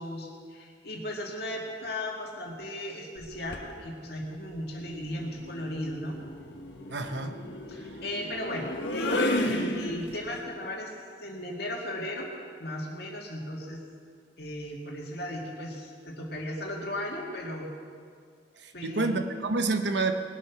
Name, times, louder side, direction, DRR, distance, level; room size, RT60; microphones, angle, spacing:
voice 1, 0.0-6.2 7.7-10.9 11.2-12.3 12.6-13.8 14.4-17.7 18.7-19.2, left 1 dB, 60° left, -1 dB, 2.2 m, -36 dB
sound 1, 3.2-3.7 5.1-10.4, left 1 dB, 85° left, 1.3 m, -33 dB
voice 2, 6.9-7.3 9.4-9.6 18.6-20.1, right 3 dB, 75° right, 7 dB, 1.0 m, -28 dB
20.0 x 8.2 x 5.9 m, 2.1 s
head